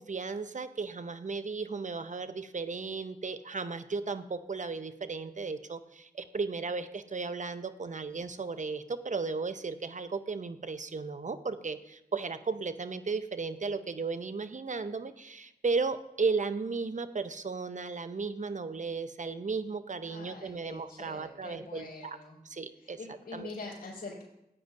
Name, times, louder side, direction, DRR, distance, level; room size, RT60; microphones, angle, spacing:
voice 1, 0.0-22.2 22.5-23.0 23.3-23.5, right 4 dB, 50° right, 11 dB, 0.6 m, -35 dB
voice 2, 20.0-22.4 22.8-24.2, left 3 dB, 70° left, -8 dB, 4.2 m, -44 dB
14.5 x 9.4 x 2.6 m, 0.84 s
cardioid pair, 55°, 16 cm